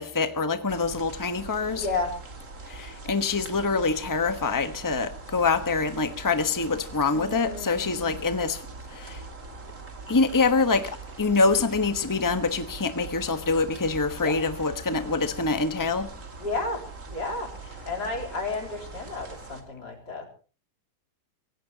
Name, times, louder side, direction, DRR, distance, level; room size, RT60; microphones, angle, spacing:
voice 1, 0.0-1.9 2.7-8.6 8.9-9.2 10.1-16.1, left 4 dB, 15° left, 1.2 m, -25 dB
sound 1, 0.7-19.6, right 3 dB, 50° right, 2.9 m, -42 dB
voice 2, 1.7-2.1 7.1-8.2 14.2-14.4 16.4-17.5 17.9-20.3, left 3 dB, 80° left, 4.4 m, -32 dB
25.0 x 17.5 x 2.9 m
omnidirectional pair, 1.7 m